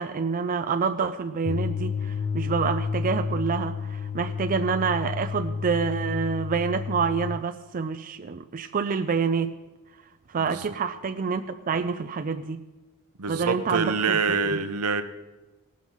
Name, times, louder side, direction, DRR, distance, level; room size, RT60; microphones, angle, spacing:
voice 1, 0.0-9.5 10.3-12.6 13.3-14.2 14.5-14.6, right 5 dB, 40° right, 8 dB, 0.4 m, -27 dB
sound 1, 1.4-7.4, left 5 dB, 35° left, 0.3 m, -31 dB
voice 2, 13.2-15.0, right 5 dB, 80° right, 10 dB, 0.8 m, -25 dB
18.0 x 6.3 x 5.6 m, 1.1 s
head